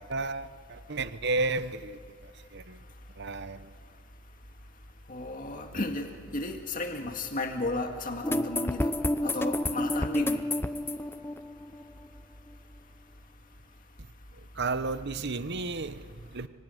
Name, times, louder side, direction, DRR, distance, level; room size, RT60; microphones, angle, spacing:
voice 1, 0.0-2.8 3.2-3.7 14.5-16.5, right 3 dB, 55° right, 13 dB, 1.0 m, -33 dB
voice 2, 5.1-8.9 9.2-10.4, left 2 dB, 40° left, 3 dB, 2.0 m, -34 dB
sound 1, 8.2-12.0, left 1 dB, 10° left, 0.6 m, -29 dB
25.0 x 25.0 x 9.3 m, 2.1 s
head